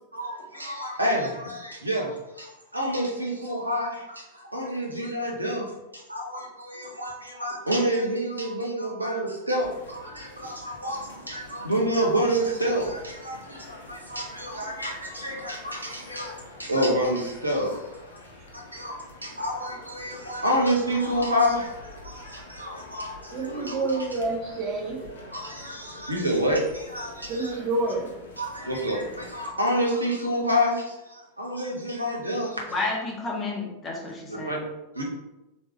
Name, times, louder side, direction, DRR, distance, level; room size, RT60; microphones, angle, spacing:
voice 1, 0.1-18.0 18.5-24.1 25.3-27.6 28.4-32.6 34.5-34.6 34.9-35.0, equal, 85° right, -1 dB, 0.8 m, -28 dB
sound 1, 9.6-29.5, left 1 dB, 65° left, 0.7 m, -46 dB
voice 2, 23.3-25.0 27.3-28.1, right 2 dB, 35° right, -2 dB, 1.0 m, -28 dB
voice 3, 32.7-34.7, left 3 dB, 25° left, -1 dB, 1.0 m, -31 dB
3.6 x 3.0 x 3.0 m, 0.97 s
figure-of-eight pair, 90°, 0 cm